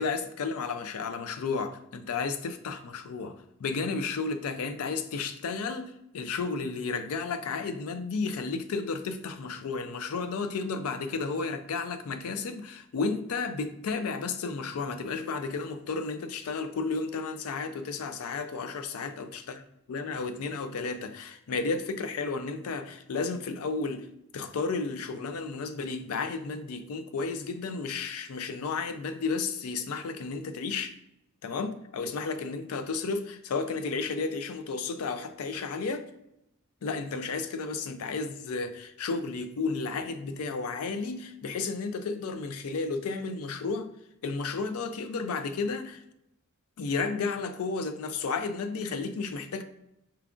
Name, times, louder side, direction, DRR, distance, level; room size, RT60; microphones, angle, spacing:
voice 1, 0.0-19.6 19.9-24.1 24.3-30.9 31.4-36.1 36.8-43.9 44.2-46.0 46.8-49.6, left 4 dB, 80° left, 9 dB, 0.4 m, -32 dB
4.5 x 2.4 x 3.7 m, 0.84 s
head